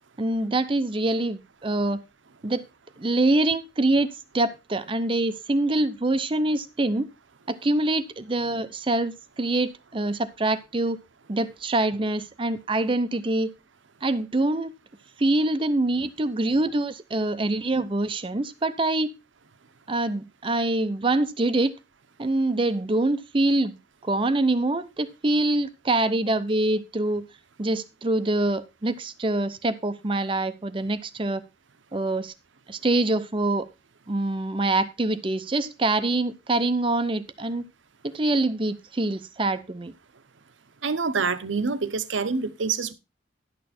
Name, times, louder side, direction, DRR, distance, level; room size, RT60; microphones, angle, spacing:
voice 1, 0.2-2.0 2.4-2.7 3.0-4.1 4.3-7.1 7.5-11.0 11.3-13.5 14.0-14.7 15.2-19.1 19.9-21.7 22.2-23.7 24.0-27.3 27.6-31.4 31.9-32.3 32.7-33.7 34.1-37.6 38.0-39.9, right 2 dB, 30° right, 0.6 m, -25 dB
voice 2, 40.8-42.9, right 4 dB, 85° right, 0.8 m, -26 dB
11.0 x 6.6 x 4.2 m
head